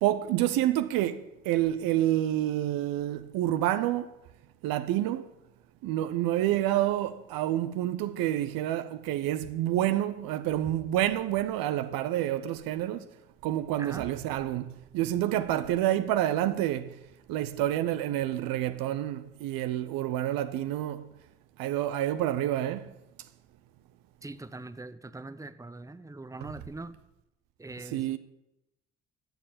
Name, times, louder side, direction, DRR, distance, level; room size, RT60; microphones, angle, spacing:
voice 1, 0.0-4.2 4.6-5.3 5.8-13.1 13.4-17.0 17.3-21.1 21.6-22.9 27.8-28.2, right 13 dB, 65° right, 0.8 m, -28 dB
voice 2, 24.2-27.0 27.6-28.2, right 2 dB, 10° right, 0.9 m, -42 dB
13.0 x 7.6 x 8.6 m
hypercardioid pair, 45°, 37 cm